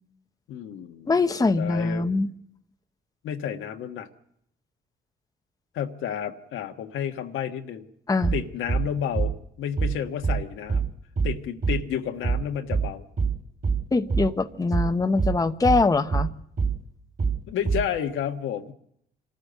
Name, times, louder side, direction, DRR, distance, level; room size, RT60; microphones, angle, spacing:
voice 1, 0.5-1.1 1.6-2.1 3.2-4.1 5.7-7.8 8.3-10.9 11.2-13.1 17.5-18.7, left 9 dB, 85° left, 1.4 m, -31 dB
voice 2, 1.1-2.3 8.1-8.3 13.9-16.3, left 3 dB, 20° left, 0.8 m, -23 dB
sound 1, 8.2-8.4 8.7-8.9 9.1-9.3 9.8-10.0 10.2-10.4 10.7-10.9 11.2-11.4 11.6-11.8 12.2-12.4 12.7-12.9 13.2-13.4 13.6-13.8 14.1-14.3 14.7-14.9 15.2-15.4 15.6-15.8 16.1-16.3 16.6-16.8 17.2-17.4 17.7-17.9, right 5 dB, 45° right, 4.2 m, -24 dB
25.0 x 13.5 x 8.0 m
cardioid pair, 90°, 20 cm